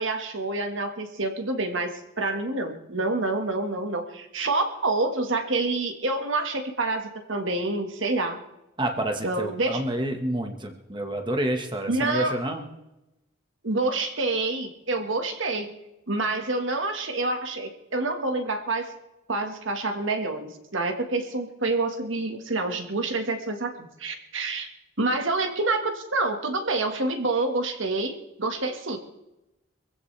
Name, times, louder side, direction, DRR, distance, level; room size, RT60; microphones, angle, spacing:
voice 1, 0.0-8.4 9.2-9.8 11.9-12.3 13.6-15.7 16.1-18.9 19.3-24.7 25.0-29.0, right 2 dB, 65° right, 5 dB, 1.7 m, -27 dB
voice 2, 8.8-12.6, right 1 dB, 25° right, 4 dB, 1.5 m, -29 dB
23.5 x 15.5 x 3.4 m, 0.95 s
head